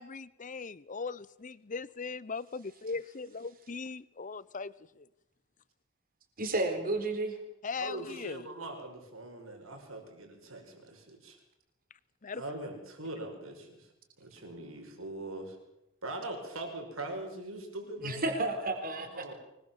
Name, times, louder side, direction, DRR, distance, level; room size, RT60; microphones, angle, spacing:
voice 1, 0.0-5.1 7.6-8.5 12.2-12.4, left 4 dB, 40° left, 19 dB, 0.8 m, -39 dB
voice 2, 6.4-7.4 18.0-19.3, right 2 dB, 45° right, 6 dB, 3.8 m, -32 dB
voice 3, 7.8-11.4 12.3-13.9 14.2-15.6 16.0-18.2 18.9-19.3, right 2 dB, 75° right, 4 dB, 5.8 m, -42 dB
24.5 x 21.0 x 7.2 m, 0.87 s
head